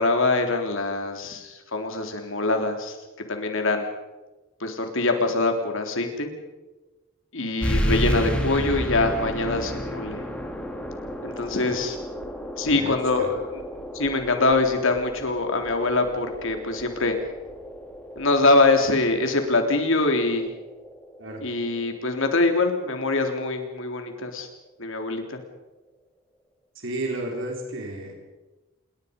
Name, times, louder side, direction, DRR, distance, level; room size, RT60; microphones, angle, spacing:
voice 1, 0.0-3.0 3.3-3.9 4.6-6.3 7.3-10.2 11.2-12.0 12.6-13.4 13.9-17.2 18.2-20.5 21.4-24.5 24.8-25.4, left 2 dB, 65° left, 4 dB, 3.6 m, -24 dB
sound 1, 7.6-22.7, equal, 5° left, 3.0 m, -32 dB
voice 2, 12.6-13.4 21.2-21.4 26.7-28.1, right 2 dB, 60° right, 1 dB, 4.3 m, -33 dB
27.5 x 21.0 x 5.4 m, 1.1 s
head